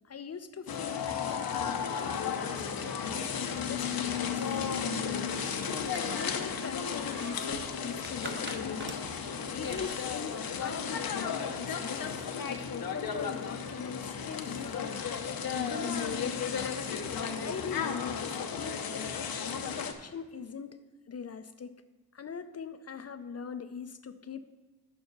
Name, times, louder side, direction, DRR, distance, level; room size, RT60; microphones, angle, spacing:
voice 1, 0.1-2.7 3.0-5.5 6.1-9.0 9.5-15.0 15.5-16.7 17.4-18.6 18.9-19.1 19.6-20.8 21.1-21.8 22.1-24.4, left 6 dB, 40° left, 10 dB, 0.5 m, -41 dB
sound 1, 0.7-19.9, left 6 dB, 65° left, 0.8 m, -34 dB
sound 2, 3.2-15.3, right 3 dB, 30° right, 0.9 m, -52 dB
7.2 x 5.3 x 6.6 m, 1.3 s
cardioid pair, 55°, 38 cm